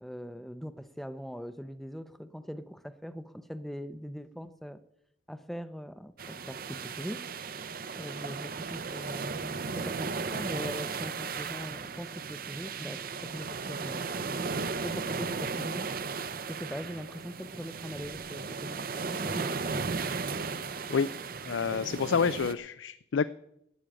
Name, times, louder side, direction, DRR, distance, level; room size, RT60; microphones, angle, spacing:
voice 1, 0.0-4.8 5.3-7.3 7.9-14.1 14.5-15.9 16.5-19.9, equal, ahead, 12 dB, 0.6 m, -41 dB
sound 1, 6.2-22.5, right 4 dB, 50° right, 0.7 m, -36 dB
voice 2, 21.4-23.2, left 5 dB, 85° left, 14 dB, 0.5 m, -28 dB
12.5 x 8.4 x 8.9 m, 0.77 s
head